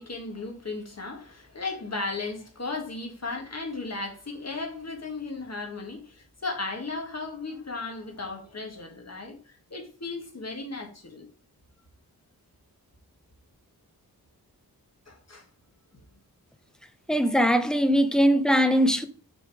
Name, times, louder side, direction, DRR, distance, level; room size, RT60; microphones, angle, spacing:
voice 1, 0.0-11.3 15.1-15.4, left 3 dB, 45° left, 1.5 m, -36 dB
voice 2, 17.1-19.1, equal, ahead, 0.6 m, -21 dB
6.0 x 3.6 x 4.7 m
wide cardioid pair, 95°, 37 cm